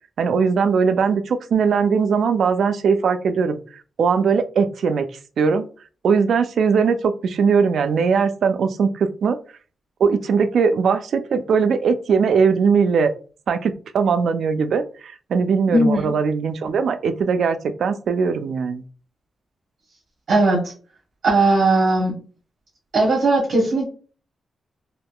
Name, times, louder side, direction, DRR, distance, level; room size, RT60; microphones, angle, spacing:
voice 1, 0.2-3.6 4.0-5.1 5.4-5.6 6.0-9.4 10.0-13.1 13.5-18.8, right 5 dB, 70° right, 9 dB, 0.3 m, -20 dB
voice 2, 15.7-16.1 20.3-20.6 21.2-22.1 22.9-23.9, right 2 dB, 55° right, -3 dB, 0.8 m, -18 dB
3.5 x 2.5 x 2.2 m, 0.39 s
wide cardioid pair, 135°, 0 cm